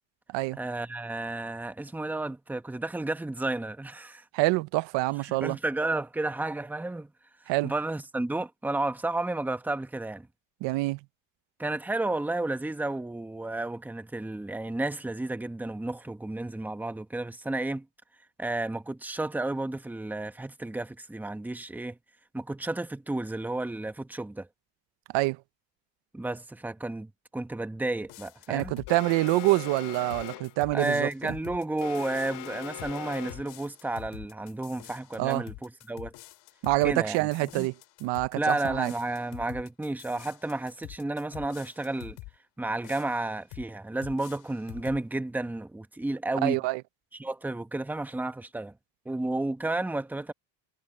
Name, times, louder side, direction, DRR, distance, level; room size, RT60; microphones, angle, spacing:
voice 1, 0.6-4.2 5.3-7.1 7.6-10.3 11.6-17.9 18.4-22.0 22.3-24.5 26.1-28.7 30.7-36.1 36.8-37.7 38.4-42.2 42.6-46.6 47.2-48.7 49.0-50.3, right 2 dB, 5° right, 0.9 m, -32 dB
voice 2, 4.3-5.6 7.5-7.7 10.6-11.0 25.1-25.4 28.5-31.3 35.2-35.4 36.6-37.7 38.0-38.9 46.4-46.8, right 20 dB, 80° right, 0.9 m, -26 dB
sound 1, 28.0-42.4 42.8-43.7 44.0-45.0, left 21 dB, 90° left, 6.1 m, -47 dB
Alarm, 28.9-30.6 31.8-33.6, left 17 dB, 65° left, 1.1 m, -41 dB
cardioid pair, 140°, 44 cm